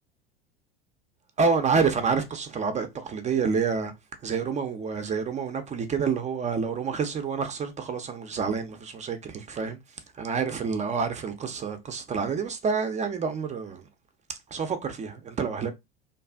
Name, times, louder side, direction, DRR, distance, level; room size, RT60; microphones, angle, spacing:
voice 1, 1.4-3.9 4.2-9.8 10.2-13.9 14.3-15.7, right 5 dB, 25° right, 0.4 m, -28 dB
2.6 x 2.3 x 2.3 m
hypercardioid pair, 85°, 30 cm